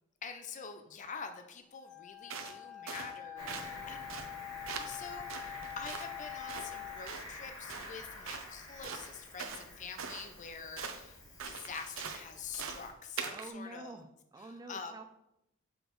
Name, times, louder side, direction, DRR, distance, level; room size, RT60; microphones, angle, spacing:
voice 1, 0.2-4.1 4.7-13.9 14.7-14.9, left 5 dB, 40° left, 6 dB, 0.5 m, -46 dB
Wind instrument woodwind instrument, 1.7-7.0, left 12 dB, ahead, 0.8 m, -46 dB
sound 1, 2.3-2.6 2.9-3.1 3.5-3.7 4.1-4.3 4.7-5.0 5.3-6.1 6.5-6.7 7.1-7.3 7.7-8.0 8.3-8.5 8.8-9.7 10.0-10.3 10.8-11.0 11.4-12.2 12.5-12.9 13.2-13.5, right 6 dB, 80° right, 0.6 m, -42 dB
Cricket, 3.3-12.9, left 2 dB, 90° left, 2.4 m, -49 dB
voice 2, 13.3-15.0, right 2 dB, 20° right, 7 dB, 0.4 m, -47 dB
6.3 x 5.0 x 3.1 m, 0.85 s
head